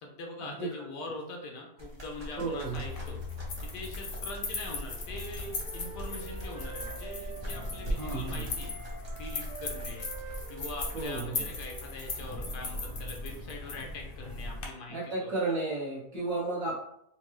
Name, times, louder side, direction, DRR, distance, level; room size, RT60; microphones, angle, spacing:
voice 1, 0.0-3.2 3.7-8.7 9.2-10.1 10.5-15.3, left 2 dB, 85° left, 1 dB, 1.3 m, -43 dB
sound 1, 1.8-11.1, right 1 dB, 40° right, 0.3 m, -42 dB
voice 2, 2.4-2.8 7.9-8.5 10.9-11.4 14.9-16.8, right 3 dB, 60° right, -6 dB, 1.2 m, -33 dB
sound 2, 2.6-14.7, left 3 dB, 60° left, 0.6 m, -38 dB
Wind instrument woodwind instrument, 4.7-8.2 8.5-12.3, right 5 dB, 75° right, 1.3 m, -47 dB
4.3 x 2.2 x 3.0 m, 0.76 s
omnidirectional pair, 1.8 m